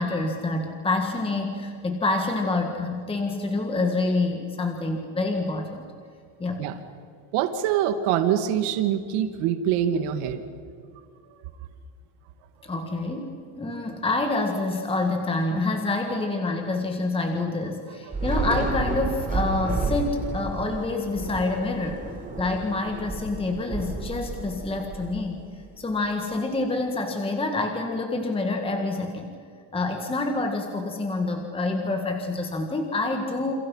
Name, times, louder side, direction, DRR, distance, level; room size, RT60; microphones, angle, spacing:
voice 1, 0.0-5.8 6.4-6.6 12.6-22.0 22.4-25.4 25.8-29.3 29.7-33.5, left 2 dB, 10° left, 3 dB, 1.8 m, -27 dB
voice 2, 7.3-10.4, right 10 dB, 85° right, 7 dB, 2.1 m, -24 dB
Thunder / Rain, 18.1-25.6, right 2 dB, 15° right, 3.5 m, -31 dB
29.0 x 29.0 x 5.6 m, 2.3 s
cardioid pair, 175°, 49 cm